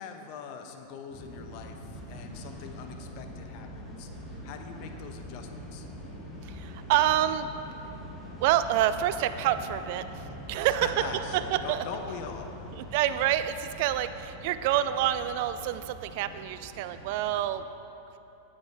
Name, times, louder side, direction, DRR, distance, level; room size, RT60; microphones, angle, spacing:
voice 1, 0.0-4.1 4.4-5.9 10.5-12.6, left 6 dB, 50° left, 5 dB, 0.9 m, -42 dB
sound 1, 1.1-17.5, equal, 15° left, 2.2 m, -43 dB
voice 2, 6.4-7.5 8.4-10.2 10.5-11.1 11.5-11.8 12.9-17.6, right 12 dB, 60° right, 12 dB, 0.3 m, -27 dB
9.4 x 8.0 x 4.7 m, 2.9 s
hypercardioid pair, 105°, 0 cm